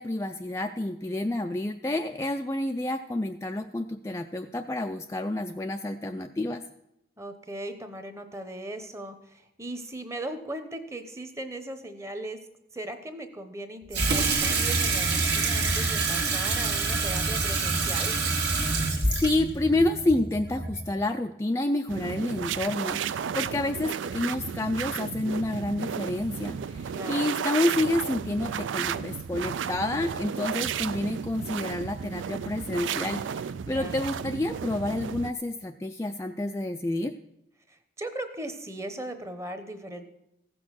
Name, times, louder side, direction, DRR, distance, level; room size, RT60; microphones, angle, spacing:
voice 1, 0.0-6.6 19.0-37.1, left 1 dB, 15° left, 5 dB, 0.3 m, -29 dB
voice 2, 7.2-12.4 12.7-18.1 23.3-23.8 26.9-27.3 33.7-34.0 37.7-40.0, right 1 dB, 15° right, 8 dB, 0.9 m, -38 dB
Water tap faucet / Sink (filling or washing), 13.9-21.0, right 3 dB, 65° right, 1.7 m, -26 dB
sound 1, 21.9-35.3, right 7 dB, 90° right, 0.4 m, -33 dB
15.0 x 6.2 x 6.3 m, 0.85 s
head